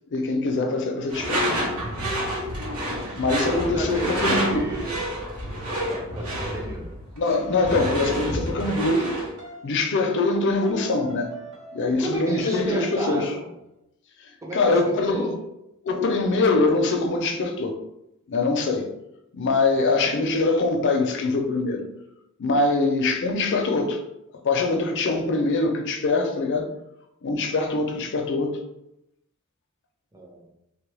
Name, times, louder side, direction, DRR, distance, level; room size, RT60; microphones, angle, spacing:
voice 1, 0.1-1.5 2.9-4.7 7.2-9.2 9.6-11.3 11.7-13.3 14.2-15.3 15.8-17.8 18.3-18.9 19.3-21.9 22.4-24.0 24.4-26.7 27.2-28.6, left 3 dB, 55° left, 0.5 m, -23 dB
Door / Screech, 1.1-9.3, equal, 90° right, 1.0 m, -29 dB
voice 2, 3.7-5.1 5.9-6.9 12.0-13.5 14.4-15.4 19.8-19.9 30.1-30.5, right 2 dB, 15° right, 0.5 m, -33 dB
sound 1, 9.4-9.7 10.7-12.1 12.4-13.3, right 1 dB, 50° right, 0.9 m, -43 dB
3.1 x 2.3 x 3.2 m
head